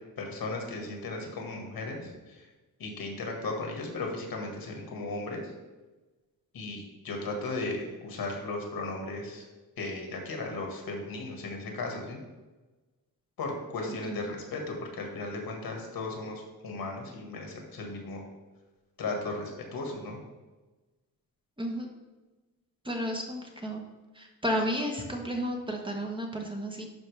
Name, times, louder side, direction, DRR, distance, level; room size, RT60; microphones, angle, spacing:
voice 1, 0.2-2.5 2.8-5.5 6.5-9.5 9.8-12.2 13.4-18.2 19.0-20.2, left 2 dB, 75° left, 1 dB, 1.8 m, -36 dB
voice 2, 22.8-23.8 24.1-26.9, equal, 15° right, 1 dB, 1.0 m, -32 dB
11.5 x 4.5 x 3.4 m, 1.2 s
wide cardioid pair, 130°, 36 cm